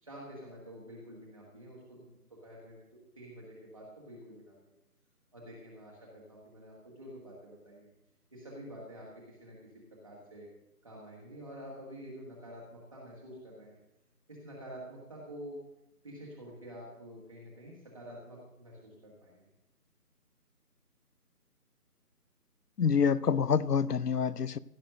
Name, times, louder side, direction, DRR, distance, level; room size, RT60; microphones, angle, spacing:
voice 1, 0.0-2.1 2.4-2.8 3.1-4.7 5.3-7.9 8.3-9.6 10.0-10.5 10.8-13.8 14.3-15.6 16.0-19.5, equal, 20° right, 1.5 m, -48 dB
voice 2, 22.8-24.6, left 6 dB, 75° left, 0.6 m, -27 dB
15.5 x 6.8 x 6.5 m
figure-of-eight pair, 160°, 47 cm